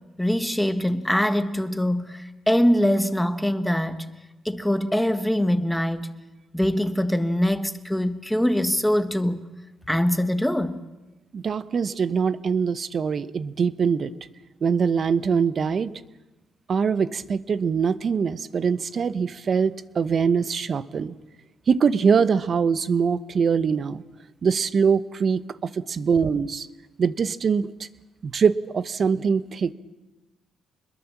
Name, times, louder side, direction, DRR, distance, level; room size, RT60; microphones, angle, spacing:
voice 1, 0.2-4.0 4.4-6.1 6.5-9.4 9.9-10.8, equal, 5° left, 1.6 m, -23 dB
voice 2, 11.3-14.1 14.6-15.9 16.7-21.1 21.7-24.0 24.4-26.7 27.0-27.9 28.2-29.7, right 6 dB, 50° right, 0.9 m, -23 dB
25.5 x 21.5 x 7.3 m
cardioid pair, 100°, 0 cm